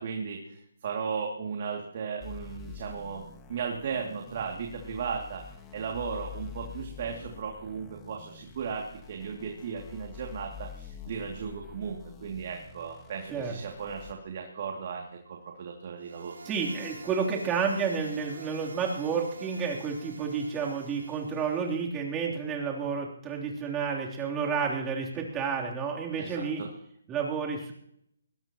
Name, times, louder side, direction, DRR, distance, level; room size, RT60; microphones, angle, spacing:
voice 1, 0.0-3.2 3.5-5.4 5.7-16.4 26.2-26.7, right 6 dB, 45° right, 1 dB, 2.6 m, -36 dB
sound 1, 2.2-14.1, left 8 dB, 15° left, 1.5 m, -47 dB
sound 2, 16.0-21.8, right 2 dB, 70° right, 5.3 m, -47 dB
voice 2, 16.5-26.6 27.1-27.7, right 6 dB, 15° right, -1 dB, 3.4 m, -30 dB
21.5 x 17.5 x 3.0 m, 0.70 s
hypercardioid pair, 155°, 0 cm